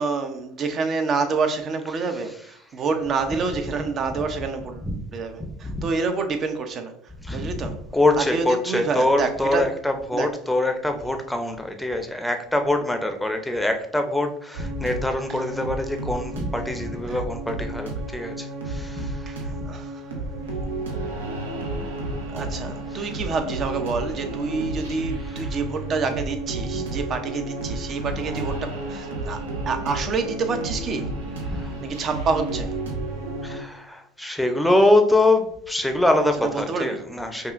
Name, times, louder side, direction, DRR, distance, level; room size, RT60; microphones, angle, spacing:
voice 1, 0.0-4.8 5.1-6.9 7.3-7.7 8.2-9.6 10.1-10.3 11.1-11.2 17.1-17.2 19.3-20.0 22.3-29.4 29.7-31.1 31.8-32.7 36.4-37.0, right 4 dB, 40° right, 7 dB, 0.7 m, -27 dB
voice 2, 1.8-2.6 3.7-3.8 4.6-5.0 5.6-5.8 7.2-19.6 22.9-23.2 25.2-25.6 27.7-27.8 31.4-31.7 33.4-37.5, left 2 dB, 5° left, 5 dB, 0.6 m, -24 dB
sound 1, 14.5-33.6, right 2 dB, 90° right, 0.7 m, -31 dB
5.4 x 2.4 x 2.5 m, 0.69 s
hypercardioid pair, 85°, 0 cm